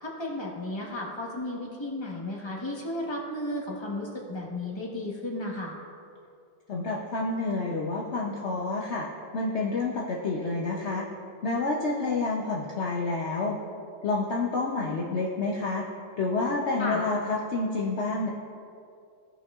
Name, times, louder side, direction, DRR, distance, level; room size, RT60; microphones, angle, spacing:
voice 1, 0.0-5.8 16.8-17.0, left 1 dB, 15° left, -2 dB, 1.1 m, -34 dB
voice 2, 6.7-9.1 9.3-11.0 11.4-13.6 14.0-15.8 16.2-18.3, left 3 dB, 60° left, -2 dB, 0.7 m, -28 dB
16.5 x 5.7 x 2.4 m, 2.5 s
omnidirectional pair, 2.0 m